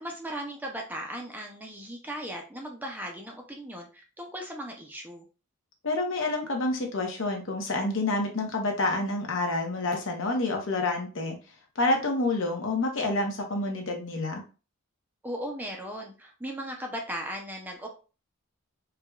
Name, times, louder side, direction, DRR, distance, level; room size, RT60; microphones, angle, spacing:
voice 1, 0.0-5.3 15.2-17.9, equal, 10° right, 2 dB, 0.5 m, -37 dB
voice 2, 5.8-11.3 11.8-14.4, left 2 dB, 60° left, 2 dB, 0.9 m, -28 dB
4.6 x 2.3 x 2.3 m, 0.33 s
head